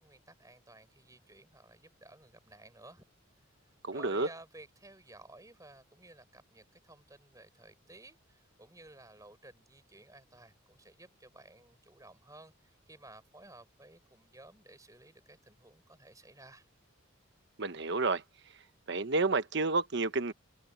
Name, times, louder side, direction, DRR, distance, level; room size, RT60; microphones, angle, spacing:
voice 1, 0.0-3.0 3.9-16.7, right 2 dB, 15° right, 5.4 m, -55 dB
voice 2, 3.8-4.3 17.6-18.2 18.9-20.3, right 3 dB, 55° right, 1.2 m, -30 dB
head